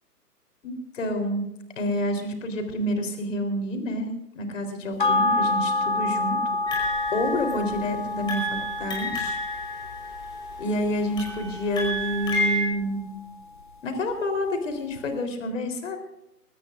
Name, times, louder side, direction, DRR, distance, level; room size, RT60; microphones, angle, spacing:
voice 1, 0.6-1.4 1.8-4.1 4.3-6.4 6.8-8.4 8.8-9.4 10.6-13.1 13.8-16.0, left 1 dB, 50° left, 6 dB, 4.0 m, -28 dB
sound 1, 5.0-13.7 14.1-14.2, left 2 dB, 35° left, 0.5 m, -29 dB
sound 2, 6.7-7.9 8.3-10.5 11.2-12.6, equal, 10° left, 4.9 m, -30 dB
22.5 x 20.0 x 2.6 m, 0.86 s
hypercardioid pair, 155°, 48 cm